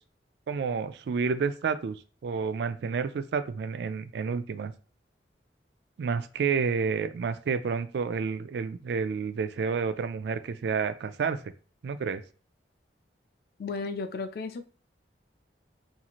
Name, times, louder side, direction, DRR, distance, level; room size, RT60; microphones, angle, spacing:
voice 1, 0.5-4.7 6.0-11.4 11.8-12.2, right 5 dB, 65° right, 0.3 m, -30 dB
voice 2, 13.6-14.6, left 4 dB, 55° left, 0.3 m, -34 dB
2.6 x 2.4 x 2.9 m
head